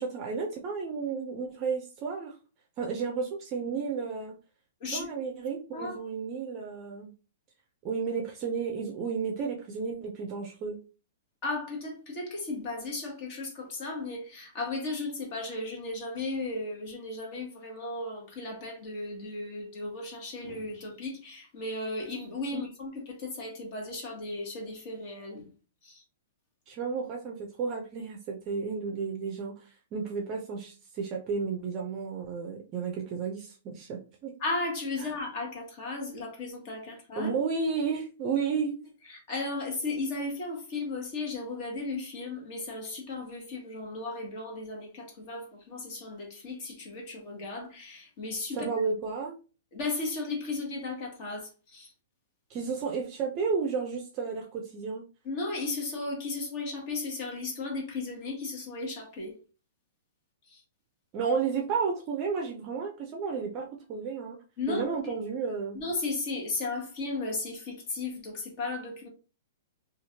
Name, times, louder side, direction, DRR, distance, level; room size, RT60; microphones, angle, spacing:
voice 1, 0.0-2.3 2.8-4.4 4.9-7.1 7.8-10.8 22.5-22.7 26.7-29.5 29.9-34.3 35.0-35.1 37.2-38.8 48.5-49.3 52.5-55.1 61.1-64.4 64.7-65.8, right 5 dB, 30° right, 0.5 m, -32 dB
voice 2, 11.4-25.5 25.8-26.0 34.4-37.3 39.0-48.7 49.7-51.9 55.2-59.3 60.5-60.6 64.6-65.1 65.7-69.1, left 3 dB, 40° left, 1.1 m, -35 dB
2.9 x 2.4 x 2.7 m
hypercardioid pair, 155°, 0 cm